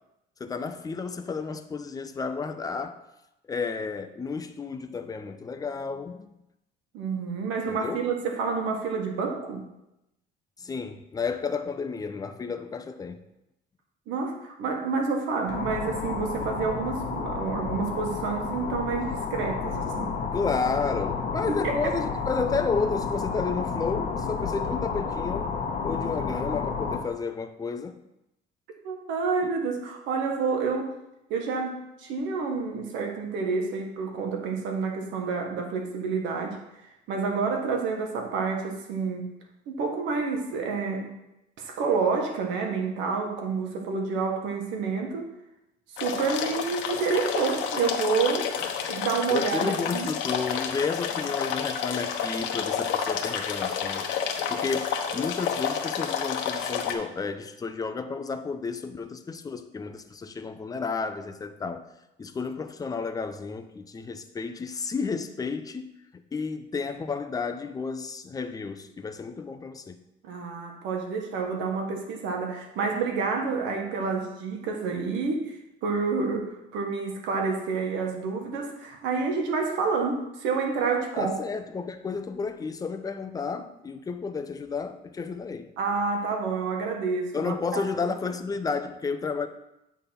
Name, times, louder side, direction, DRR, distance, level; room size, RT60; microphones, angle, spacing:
voice 1, 0.4-3.0 3.5-6.3 7.7-8.0 10.6-13.2 20.3-25.5 25.8-27.9 49.3-54.1 54.5-61.9 62.2-65.9 66.3-70.0 81.2-85.7 87.3-89.5, left 4 dB, 20° left, 0.5 m, -32 dB
voice 2, 6.9-9.7 14.1-20.1 21.6-21.8 28.8-30.9 31.3-36.6 37.1-39.3 39.7-41.1 41.6-45.3 46.0-48.5 48.9-50.1 70.2-81.3 83.5-83.6 85.8-87.8, right 4 dB, 80° right, 1.4 m, -29 dB
sound 1, 15.5-27.0, left 5 dB, 45° left, 1.3 m, -31 dB
sound 2, 46.0-56.9, left 7 dB, 75° left, 0.9 m, -30 dB
8.2 x 3.7 x 5.7 m
cardioid pair, 125°, 19 cm